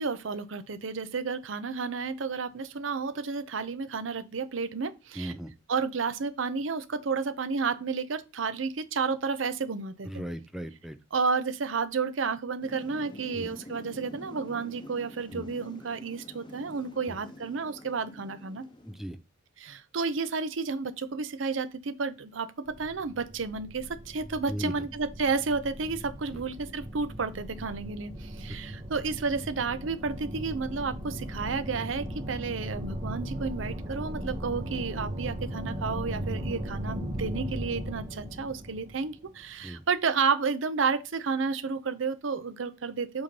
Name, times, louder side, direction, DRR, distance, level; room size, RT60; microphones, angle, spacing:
voice 1, 0.0-5.4 5.7-10.2 11.1-18.6 19.6-22.5 22.8-43.2, right 5 dB, 75° right, 0.6 m, -31 dB
voice 2, 5.2-5.5 10.0-11.0 13.3-13.5 15.3-15.5 17.1-17.2 18.9-19.2 24.5-24.9 26.3-26.4 39.6-39.8, equal, ahead, 0.5 m, -37 dB
Thunder / Rain, 12.6-19.0, left 1 dB, 25° left, 0.9 m, -46 dB
sound 1, 22.7-39.7, equal, 30° right, 1.8 m, -38 dB
7.8 x 2.9 x 5.3 m
head